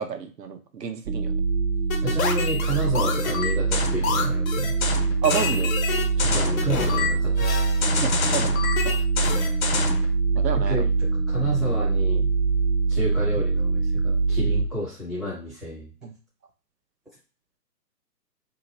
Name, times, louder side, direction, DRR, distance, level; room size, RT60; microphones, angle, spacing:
voice 1, 0.0-1.4 5.2-5.7 8.0-9.5 10.3-10.8 16.0-16.1, right 7 dB, 90° right, 7 dB, 0.8 m, -30 dB
sound 1, 1.1-14.6, right 4 dB, 50° right, 0.8 m, -24 dB
sound 2, 1.9-10.1, left 6 dB, 55° left, 0.9 m, -28 dB
voice 2, 2.0-4.7 6.2-7.7 10.5-12.3 12.9-15.9, right 1 dB, ahead, -9 dB, 0.6 m, -31 dB
2.9 x 2.5 x 4.1 m, 0.38 s
hypercardioid pair, 140°, 48 cm